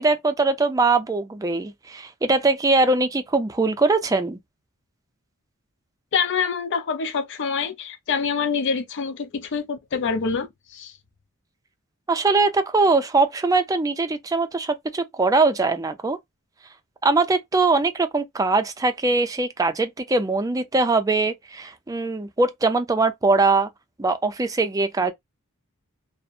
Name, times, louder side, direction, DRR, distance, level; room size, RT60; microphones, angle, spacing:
voice 1, 0.0-4.4 12.1-16.2 17.0-23.7 24.0-25.1, right 3 dB, 15° right, 0.4 m, -21 dB
voice 2, 6.1-10.9, left 5 dB, 55° left, 0.4 m, -26 dB
2.6 x 2.0 x 2.3 m
head